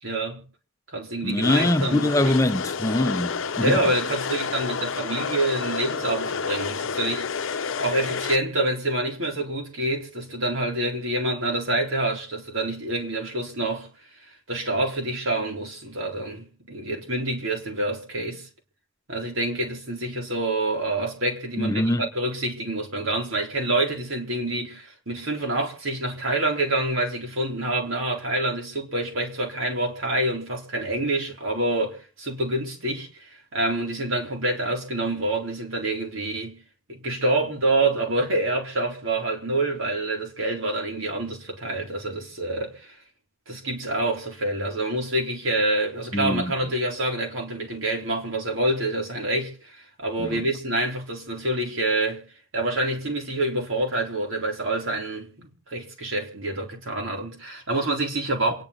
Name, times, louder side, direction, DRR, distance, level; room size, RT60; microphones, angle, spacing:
voice 1, 0.0-0.4 0.9-2.3 3.6-13.9 14.5-18.5 19.1-36.6 36.9-43.0 43.5-52.3 52.5-58.6, right 2 dB, 85° right, 4.1 m, -27 dB
voice 2, 1.2-3.8 21.6-22.1 46.1-46.5 50.2-50.4, left 1 dB, 15° left, 0.8 m, -23 dB
sound 1, 1.4-8.4, left 5 dB, 80° left, 0.7 m, -30 dB
27.5 x 10.0 x 4.2 m
head